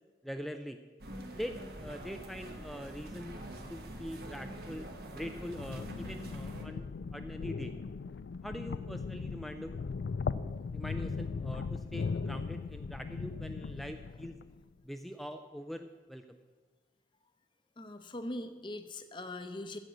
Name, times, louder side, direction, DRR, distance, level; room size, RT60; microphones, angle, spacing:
voice 1, 0.2-0.8 1.3-3.4 3.7-4.9 5.1-7.8 8.4-9.8 10.7-14.4 14.8-16.4, equal, ahead, 6 dB, 0.4 m, -43 dB
sound 1, 1.0-6.6, right 1 dB, 55° right, 1.3 m, -45 dB
sound 2, 5.4-14.6, left 4 dB, 70° left, 0.4 m, -38 dB
voice 2, 17.8-19.8, left 1 dB, 25° left, 8 dB, 0.7 m, -41 dB
15.0 x 5.3 x 7.9 m, 1.3 s
head